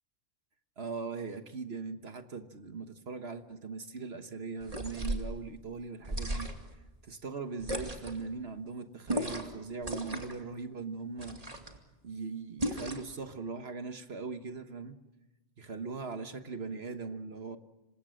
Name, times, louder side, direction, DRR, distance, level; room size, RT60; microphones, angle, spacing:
voice 1, 0.8-6.5 7.0-11.4 12.0-15.0 15.6-17.6, right 4 dB, 65° right, 8 dB, 1.6 m, -40 dB
sound 1, 4.6-5.3 6.0-6.7 7.6-8.2 9.1-9.6 9.8-10.4 11.2-11.8 12.6-13.1, right 1 dB, 35° right, 2.4 m, -35 dB
28.0 x 24.5 x 6.5 m, 1.1 s
omnidirectional pair, 1.1 m